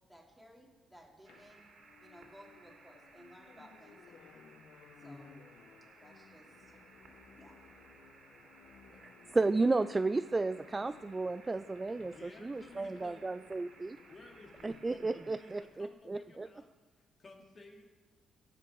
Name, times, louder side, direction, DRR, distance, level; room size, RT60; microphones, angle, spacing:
voice 1, 0.1-1.7 2.0-4.4 5.0-5.3 6.0-6.8 7.4-7.5, equal, 5° right, -1 dB, 2.9 m, -58 dB
sound 1, 1.2-15.6, right 4 dB, 65° right, 2.6 m, -60 dB
sound 2, 1.3-16.0, left 7 dB, 75° left, 0.8 m, -60 dB
voice 2, 5.0-5.4 12.0-13.3 14.1-16.7 17.0-17.9, left 2 dB, 35° left, 2 dB, 2.2 m, -55 dB
voice 3, 9.0-14.0 14.6-16.5, right 3 dB, 20° right, 13 dB, 0.3 m, -33 dB
17.0 x 6.0 x 7.1 m, 1.3 s
cardioid pair, 90°, 0 cm